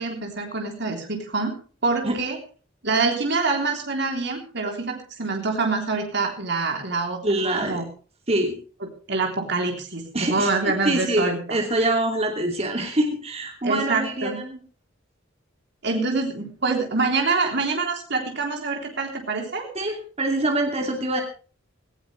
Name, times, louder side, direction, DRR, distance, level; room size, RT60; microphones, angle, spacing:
voice 1, 0.0-1.5 1.8-2.4 2.8-7.2 7.6-7.8 9.1-11.4 13.6-14.4 15.8-19.7, right 3 dB, 60° right, 3 dB, 3.4 m, -25 dB
voice 2, 7.2-7.8 8.3-8.5 10.1-10.5 10.8-14.6 19.7-21.2, right 1 dB, 35° right, 3 dB, 2.7 m, -24 dB
18.0 x 16.0 x 3.4 m, 0.38 s
head